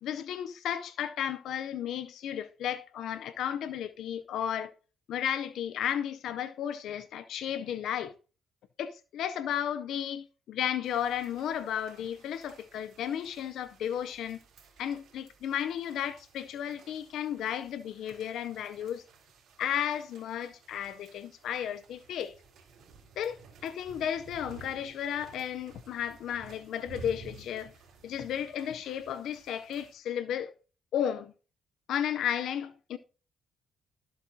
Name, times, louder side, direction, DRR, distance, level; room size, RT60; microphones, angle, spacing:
voice 1, 0.0-4.7 5.1-8.1 8.8-14.4 14.8-19.0 19.6-22.3 23.2-27.7 28.0-30.5 30.9-31.3 31.9-33.0, left 9 dB, 75° left, 0.5 m, -34 dB
sound 1, 10.8-29.9, right 4 dB, 75° right, 3.2 m, -54 dB
14.0 x 7.6 x 2.7 m
cardioid pair, 90°, 0 cm